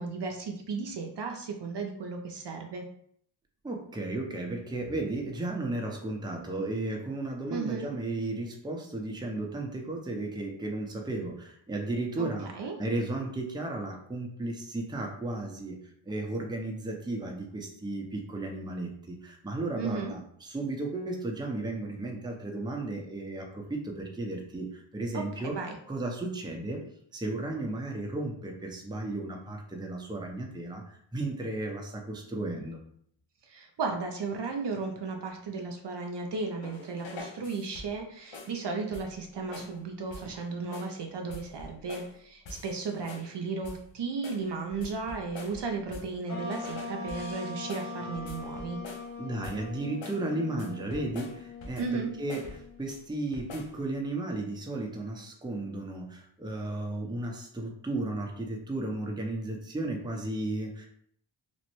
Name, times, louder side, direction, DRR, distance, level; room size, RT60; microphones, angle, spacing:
voice 1, 0.0-2.8 7.5-7.9 12.2-12.3 12.5-12.7 19.8-20.1 25.1-25.8 33.5-48.8 51.8-52.1, right 4 dB, 60° right, 3 dB, 0.5 m, -35 dB
voice 2, 3.6-12.5 12.8-15.8 16.1-25.6 25.9-26.8 27.1-32.8 49.2-60.9, right 2 dB, 10° right, 1 dB, 0.6 m, -34 dB
sound 1, 36.6-38.0 38.3-38.6 38.9-39.2 39.5-39.8 40.1-40.4 40.7-41.0 41.3-42.2 42.5-43.3 43.6-43.9 44.2-46.2 46.5-49.1 49.4-49.7 50.0-50.3 50.6-52.0 52.3-53.0 53.3-53.8, left 2 dB, 65° left, 0.7 m, -46 dB
sound 2, 46.3-53.0, left 3 dB, 35° left, 1.0 m, -41 dB
3.0 x 2.1 x 3.0 m, 0.65 s
cardioid pair, 40°, 49 cm